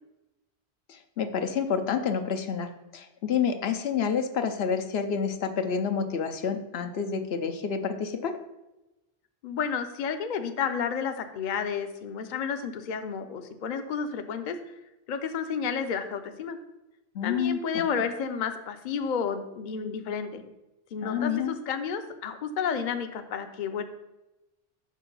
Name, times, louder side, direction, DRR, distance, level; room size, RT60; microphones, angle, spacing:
voice 1, 0.9-8.4 17.1-17.8 21.0-21.6, left 6 dB, 80° left, 7 dB, 1.0 m, -29 dB
voice 2, 9.4-14.6 15.1-16.6 17.2-20.4 20.9-23.8, left 6 dB, 55° left, 8 dB, 0.7 m, -31 dB
6.4 x 5.8 x 5.4 m, 0.97 s
omnidirectional pair, 1.0 m